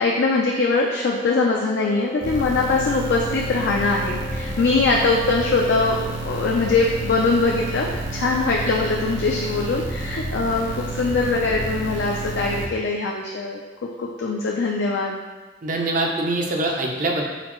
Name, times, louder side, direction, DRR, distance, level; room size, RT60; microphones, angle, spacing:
voice 1, 0.0-13.6 14.0-15.2, left 3 dB, 60° left, -1 dB, 0.4 m, -22 dB
Wind instrument woodwind instrument, 0.9-7.6, left 4 dB, 85° left, 1.2 m, -38 dB
sound 1, 2.2-12.6, right 2 dB, 85° right, 0.8 m, -30 dB
voice 2, 15.6-17.2, right 2 dB, 40° right, 1 dB, 0.5 m, -23 dB
4.2 x 3.8 x 3.0 m, 1.3 s
head